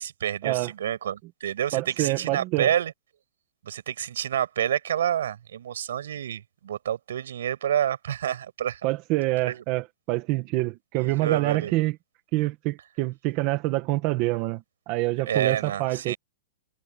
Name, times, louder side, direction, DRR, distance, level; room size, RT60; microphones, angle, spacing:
voice 1, 0.0-2.9 3.6-8.8 9.4-9.6 11.0-11.7 15.3-16.2, right 10 dB, 70° right, 6.0 m, -28 dB
voice 2, 1.7-2.7 8.8-11.9 12.3-16.1, right 19 dB, 25° right, 1.2 m, -26 dB
hypercardioid pair, 175°, 0 cm